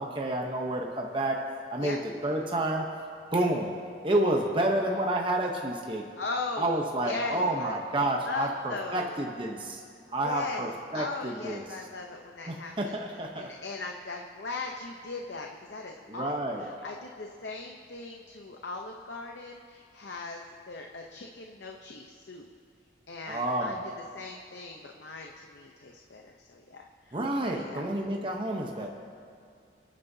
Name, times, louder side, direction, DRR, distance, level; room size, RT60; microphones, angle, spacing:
voice 1, 0.0-1.4 1.7-2.0 2.2-2.8 3.3-3.7 4.0-6.0 6.6-9.8 10.1-11.6 12.5-13.5 16.1-16.6 23.3-23.8 27.1-28.9, right 1 dB, 25° right, 1 dB, 0.8 m, -29 dB
voice 2, 6.2-6.7 7.0-7.8 8.3-9.1 10.2-10.7 10.9-12.9 13.4-16.3 16.6-20.4 20.7-22.5 23.1-23.8 24.1-27.9 28.7-28.9, left 3 dB, 70° left, 2 dB, 0.7 m, -38 dB
28.0 x 9.5 x 2.7 m, 2.4 s
head